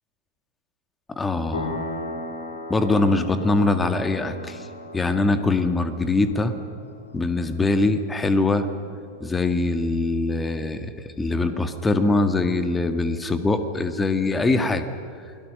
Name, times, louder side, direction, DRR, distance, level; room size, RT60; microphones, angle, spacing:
voice 1, 1.1-1.8 2.7-4.6 4.9-6.6 7.1-8.7 9.2-14.9, left 2 dB, 10° left, 8 dB, 1.9 m, -23 dB
sound 1, 1.5-9.9, left 2 dB, 65° left, 5.5 m, -38 dB
28.5 x 22.0 x 6.7 m, 2.4 s
figure-of-eight pair, 90°, 0 cm